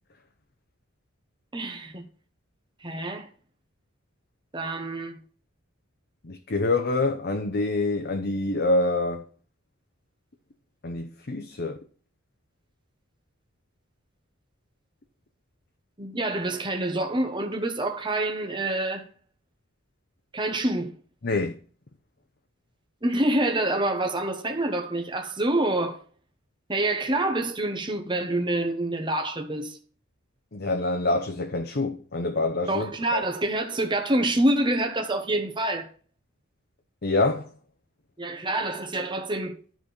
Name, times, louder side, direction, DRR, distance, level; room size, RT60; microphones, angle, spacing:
voice 1, 1.5-2.1 2.8-3.3 4.5-5.2 16.0-19.1 20.3-20.9 23.0-26.0 26.7-29.8 32.7-35.9 38.2-39.6, right 1 dB, 20° right, 1.2 m, -27 dB
voice 2, 6.2-9.2 10.8-11.8 21.2-21.6 30.5-33.2 37.0-37.5, left 2 dB, 50° left, 0.8 m, -26 dB
12.0 x 4.4 x 5.1 m
head